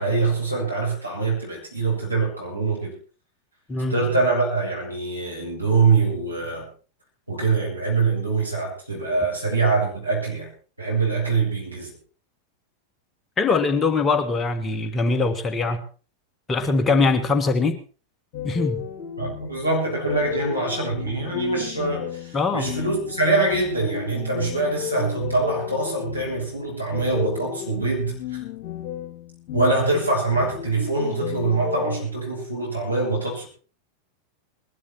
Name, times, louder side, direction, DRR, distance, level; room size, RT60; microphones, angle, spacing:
voice 1, 0.0-2.9 3.9-6.7 7.3-10.5 10.8-11.9 19.2-28.2 29.5-33.5, right 3 dB, 85° right, -2 dB, 7.4 m, -24 dB
voice 2, 3.7-4.0 13.4-15.8 16.5-17.8 18.4-18.9 22.3-22.7, left 4 dB, 20° left, 7 dB, 1.7 m, -22 dB
sound 1, 18.3-32.1, left 11 dB, 45° left, 2.1 m, -34 dB
20.5 x 12.5 x 4.4 m, 0.38 s
figure-of-eight pair, 90°, 0 cm